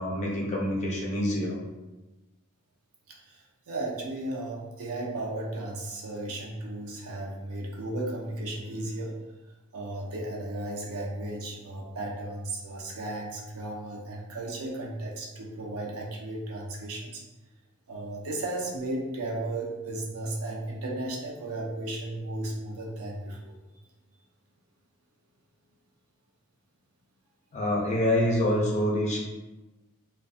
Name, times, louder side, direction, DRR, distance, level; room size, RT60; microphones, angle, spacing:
voice 1, 0.0-1.6 27.5-29.2, left 1 dB, 30° left, -3 dB, 0.5 m, -26 dB
voice 2, 3.1-9.1 9.7-17.2 17.9-23.6, right 2 dB, 70° right, -1 dB, 0.5 m, -35 dB
2.5 x 2.2 x 2.4 m, 1.1 s
head